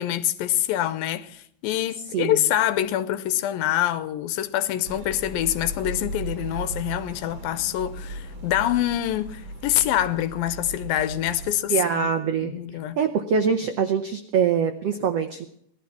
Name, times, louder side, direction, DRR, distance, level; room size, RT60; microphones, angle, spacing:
voice 1, 0.0-12.1 12.4-13.0, left 12 dB, 80° left, 2.5 m, -25 dB
sound 1, 4.8-11.6, right 1 dB, 50° right, 1.6 m, -36 dB
voice 2, 11.7-12.6 13.0-15.5, right 7 dB, 85° right, 1.3 m, -24 dB
17.5 x 12.0 x 5.8 m
omnidirectional pair, 4.2 m